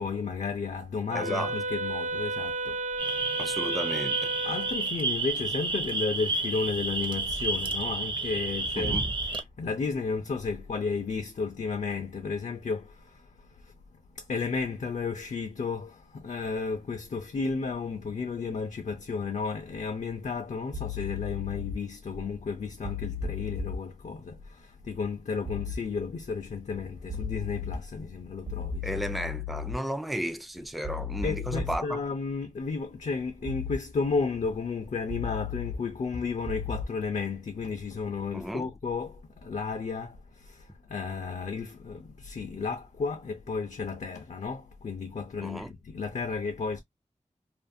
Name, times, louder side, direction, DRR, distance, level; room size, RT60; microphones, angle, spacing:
voice 1, 0.0-2.8 3.1-3.5 4.4-13.7 14.1-29.1 31.2-46.8, left 4 dB, 70° left, 0.5 m, -33 dB
voice 2, 1.1-1.5 3.4-4.2 8.8-9.0 28.8-32.0 38.3-38.7 45.4-45.7, equal, ahead, 0.3 m, -33 dB
Wind instrument woodwind instrument, 1.1-4.9, right 2 dB, 80° right, 0.5 m, -33 dB
sound 1, 3.0-9.4, right 3 dB, 40° right, 0.6 m, -30 dB
sound 2, 20.7-21.7 22.8-23.8 25.5-25.8 27.1-27.8 28.5-29.7 30.8-31.8 33.5-33.8 35.1-35.8 36.5-36.8, left 6 dB, 65° right, 0.9 m, -34 dB
2.5 x 2.5 x 2.5 m
wide cardioid pair, 85°, 13 cm